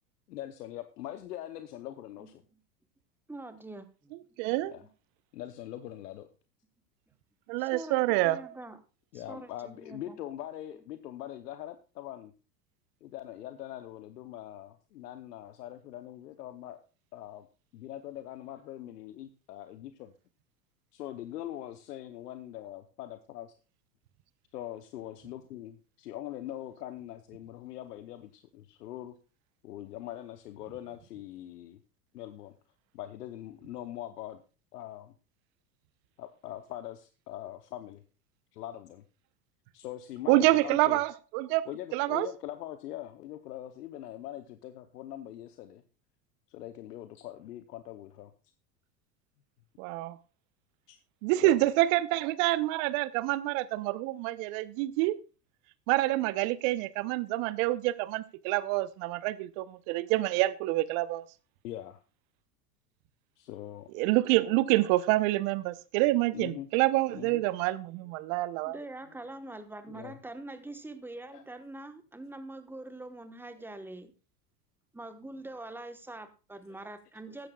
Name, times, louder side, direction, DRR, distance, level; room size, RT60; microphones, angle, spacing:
voice 1, 0.3-2.4 4.7-4.8 5.3-6.3 9.1-12.3 13.0-16.8 17.1-17.5 17.7-20.1 20.9-23.5 24.5-29.1 29.6-31.8 32.1-32.5 32.9-34.4 34.7-35.1 36.2-38.0 38.5-39.0 39.7-41.0 41.6-45.8 46.5-48.3 50.9-51.0 51.4-51.6 61.6-62.0 63.4-63.9 66.3-66.7 67.1-67.4 69.9-70.2 71.3-71.4 77.3-77.4, left 13 dB, 75° left, 0.9 m, -42 dB
voice 2, 3.3-4.2 7.6-8.8 9.1-10.2 66.5-66.6 68.6-74.1 74.9-77.5, right 2 dB, 5° right, 1.2 m, -44 dB
voice 3, 4.4-4.7 7.5-8.4 40.3-41.7 41.9-42.3 49.8-50.2 51.2-55.2 55.9-61.2 63.9-68.8, right 17 dB, 55° right, 0.9 m, -27 dB
14.5 x 10.0 x 2.3 m
hypercardioid pair, 90°, 47 cm